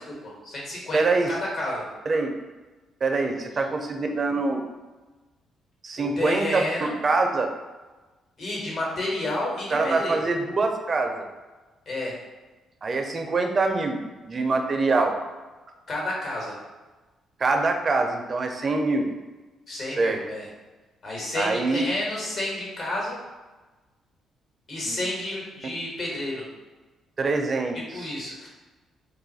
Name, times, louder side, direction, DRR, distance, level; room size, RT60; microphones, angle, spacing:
voice 1, 0.1-1.0 1.3-1.9 6.0-7.0 8.4-10.3 11.9-12.1 15.9-16.6 19.7-20.5 21.0-23.2 24.7-26.4 27.9-28.5, left 1 dB, 55° left, -3 dB, 1.2 m, -30 dB
voice 2, 0.9-1.3 2.1-2.3 3.0-4.6 5.8-6.6 7.0-7.5 9.7-11.3 12.8-15.2 17.4-19.1 20.0-20.2 21.3-21.8 24.9-25.0 27.2-28.1, right 3 dB, 40° right, 4 dB, 0.4 m, -24 dB
2.5 x 2.4 x 4.0 m, 1.2 s
cardioid pair, 90°, 0 cm